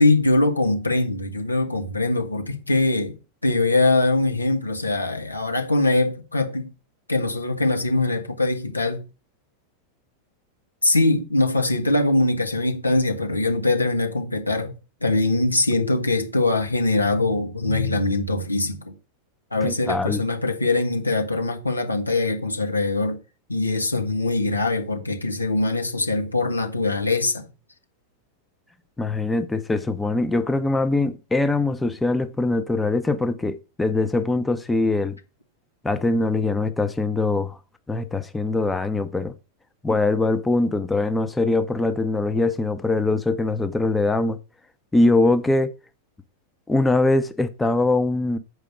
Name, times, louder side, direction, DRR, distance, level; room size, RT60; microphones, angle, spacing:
voice 1, 0.0-3.2 3.4-6.7 7.1-9.0 10.8-14.8 15.0-19.0 19.5-23.2 23.5-27.5, left 2 dB, 85° left, 1.4 m, -22 dB
voice 2, 19.6-20.2 29.0-35.2 35.8-37.6 37.9-39.4 39.8-44.4 44.9-45.7 46.7-48.4, left 2 dB, 10° left, 0.7 m, -22 dB
7.6 x 4.9 x 6.4 m
figure-of-eight pair, 90°, 0 cm